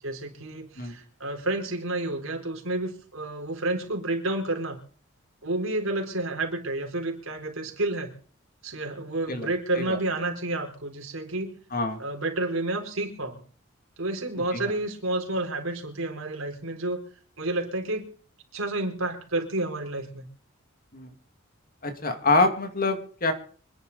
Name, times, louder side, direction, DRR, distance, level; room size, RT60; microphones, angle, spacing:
voice 1, 0.0-4.8 5.4-8.1 8.6-11.6 12.0-13.4 14.0-17.0 17.4-18.1 18.5-20.3, right 2 dB, 85° right, 3 dB, 4.2 m, -30 dB
voice 2, 21.8-23.3, left 3 dB, 45° left, 7 dB, 2.4 m, -25 dB
26.0 x 10.5 x 4.1 m, 0.44 s
head